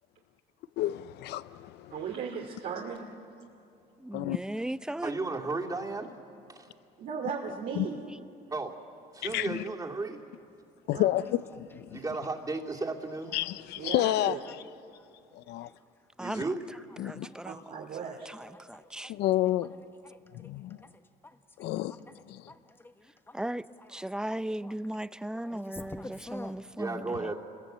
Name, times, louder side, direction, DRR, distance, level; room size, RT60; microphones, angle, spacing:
voice 1, 0.8-1.9 4.1-4.4 7.8-7.9 9.2-9.6 10.9-12.0 13.3-14.4 15.3-15.7 17.0-17.3 19.1-19.7 20.3-20.8 21.6-21.9 22.3-22.5, left 14 dB, 80° left, 0.6 m, -30 dB
voice 2, 1.9-3.1 7.0-8.1 10.9-11.1 13.8-14.4 17.4-18.3, right 6 dB, 65° right, 2.7 m, -36 dB
voice 3, 4.0-5.2 16.2-16.5 17.0-17.9 18.3-19.1 23.3-27.3, right 1 dB, 5° right, 0.5 m, -37 dB
voice 4, 5.0-6.1 6.5-6.7 8.5-8.8 9.1-10.2 11.9-13.3 16.2-16.6 26.8-27.3, right 3 dB, 20° right, 2.7 m, -34 dB
voice 5, 18.5-19.3 20.0-20.9 21.2-21.7 22.5-23.4 23.8-24.0 24.6-24.7 25.3-26.7, left 2 dB, 15° left, 1.4 m, -48 dB
29.5 x 21.5 x 8.2 m
cardioid pair, 110°, 17 cm